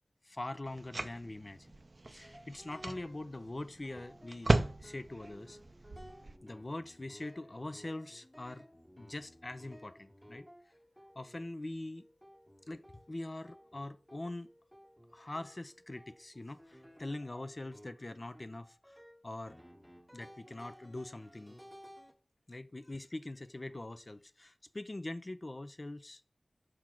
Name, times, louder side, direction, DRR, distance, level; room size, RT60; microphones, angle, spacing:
voice 1, 0.2-1.7 2.1-5.6 6.4-8.7 9.0-10.7 11.2-12.1 12.7-14.5 15.1-19.6 20.1-21.6 22.5-26.2, left 2 dB, 35° left, 0.4 m, -43 dB
sound 1, 0.7-6.4, right 2 dB, 45° right, 0.4 m, -36 dB
sound 2, 2.2-3.4 3.8-11.6 12.0-22.1, equal, 5° left, 1.2 m, -57 dB
6.1 x 4.5 x 3.7 m
wide cardioid pair, 85°, 0 cm